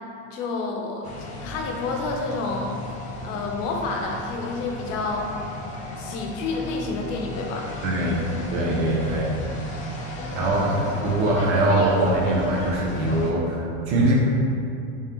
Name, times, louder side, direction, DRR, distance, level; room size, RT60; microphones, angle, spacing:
voice 1, 0.3-1.1 1.4-2.8 3.2-5.3 6.0-7.8, left 3 dB, 85° left, 1 dB, 0.7 m, -29 dB
sound 1, 1.0-13.3, left 2 dB, 20° left, 0.3 m, -35 dB
voice 2, 7.8-8.2 8.5-9.7 10.3-14.1, right 1 dB, 70° right, -3 dB, 1.0 m, -22 dB
3.6 x 2.8 x 3.5 m, 2.6 s
supercardioid pair, 145°, 37 cm